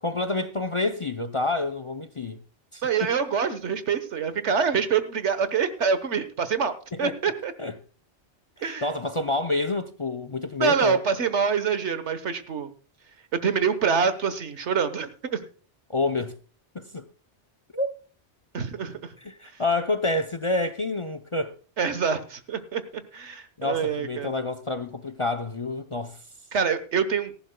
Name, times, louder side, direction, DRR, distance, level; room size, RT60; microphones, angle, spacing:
voice 1, 0.0-2.4 2.7-3.1 6.9-7.2 7.6-7.8 8.6-11.0 15.9-16.4 16.7-17.1 17.7-17.9 19.2-21.5 23.6-26.2, left 2 dB, 35° left, 0.6 m, -28 dB
voice 2, 2.8-6.7 7.0-7.5 8.6-8.8 10.6-12.7 13.3-15.4 18.5-19.0 21.8-24.3 26.5-27.3, right 6 dB, 75° right, 1.4 m, -25 dB
18.0 x 14.5 x 2.2 m
omnidirectional pair, 1.2 m